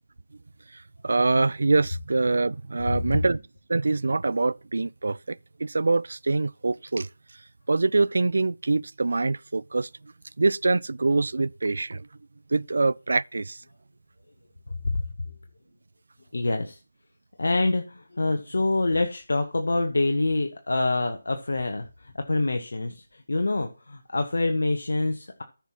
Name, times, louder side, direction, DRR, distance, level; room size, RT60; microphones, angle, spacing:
voice 1, 0.7-3.4 3.7-7.1 7.7-10.1 10.4-12.1 12.5-13.6, right 3 dB, 60° right, 0.3 m, -25 dB
voice 2, 16.3-16.8 17.4-25.4, left 2 dB, 65° left, 1.0 m, -26 dB
14.0 x 5.9 x 3.0 m
figure-of-eight pair, 160°, 0 cm